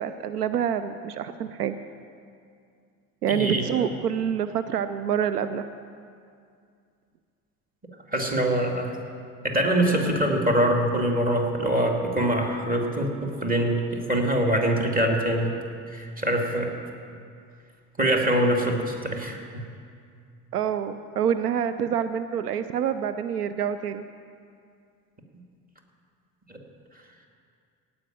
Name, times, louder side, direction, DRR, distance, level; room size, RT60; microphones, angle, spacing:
voice 1, 0.0-1.8 3.2-5.6 20.5-24.1, right 8 dB, 85° right, 11 dB, 0.5 m, -27 dB
voice 2, 3.3-3.9 8.1-9.0 9.4-15.5 15.9-16.7 18.0-19.6 26.5-26.6, right 1 dB, 20° right, 1 dB, 2.3 m, -24 dB
17.0 x 5.8 x 8.9 m, 2.3 s
figure-of-eight pair, 55°, 45 cm